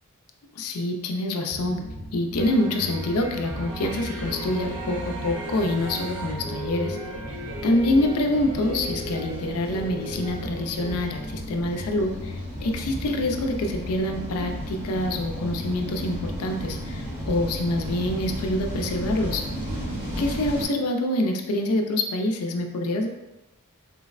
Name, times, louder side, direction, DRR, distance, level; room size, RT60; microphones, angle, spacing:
voice 1, 0.5-1.8 2.1-7.0 7.6-19.4 20.2-23.1, left 1 dB, 75° left, 3 dB, 0.4 m, -26 dB
sound 1, 1.5-20.3, equal, 30° left, 0.6 m, -38 dB
sound 2, 2.4-11.0, right 1 dB, 65° right, 0.5 m, -36 dB
sound 3, 4.4-20.7, equal, 25° right, 0.7 m, -36 dB
3.9 x 2.1 x 2.4 m, 1.1 s
head